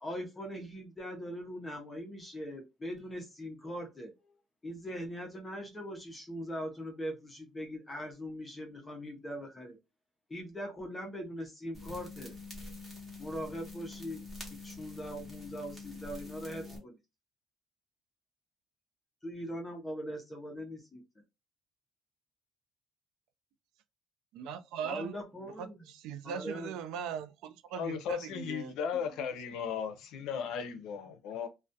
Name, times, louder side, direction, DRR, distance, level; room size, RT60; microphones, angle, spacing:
voice 1, 0.0-4.1 4.6-9.8 10.3-12.3 13.2-14.2 14.6-17.0 19.2-21.0 24.8-25.9 26.2-26.7, equal, 15° left, 0.5 m, -41 dB
sound 1, 11.7-16.8, left 3 dB, 10° right, 0.9 m, -46 dB
voice 2, 24.3-25.1 25.6-28.7, right 7 dB, 80° right, 0.3 m, -40 dB
voice 3, 27.7-31.5, left 7 dB, 70° left, 0.5 m, -36 dB
2.3 x 2.1 x 2.6 m
cardioid pair, 160°, 0 cm